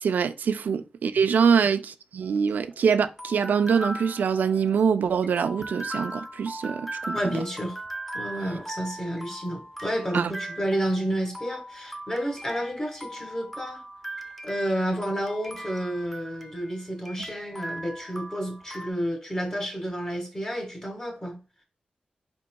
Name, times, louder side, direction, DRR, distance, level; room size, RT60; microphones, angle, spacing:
voice 1, 0.0-7.3 10.1-10.3, right 6 dB, 90° right, 0.3 m, -24 dB
sound 1, 2.2-18.9, right 1 dB, ahead, 0.7 m, -39 dB
voice 2, 7.1-7.8 8.1-13.8 14.4-21.4, equal, 25° left, 1.7 m, -30 dB
4.3 x 4.0 x 2.2 m
cardioid pair, 65°, 3 cm